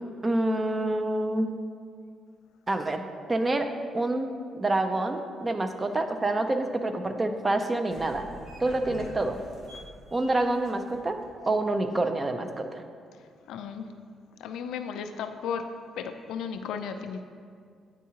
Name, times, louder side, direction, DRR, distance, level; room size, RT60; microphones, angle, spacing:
voice 1, 0.2-1.5 2.7-3.0 3.3-3.7 3.9-8.2 8.6-9.4 10.1-11.2 11.5-12.8, right 2 dB, 25° right, 7 dB, 0.5 m, -27 dB
sound 1, 7.9-11.9, equal, 65° right, 1.2 m, -46 dB
voice 2, 13.5-13.9 14.4-15.7 16.0-17.2, left 7 dB, 85° left, 7 dB, 0.3 m, -34 dB
9.4 x 3.6 x 2.9 m, 2.2 s
cardioid pair, 90°, 0 cm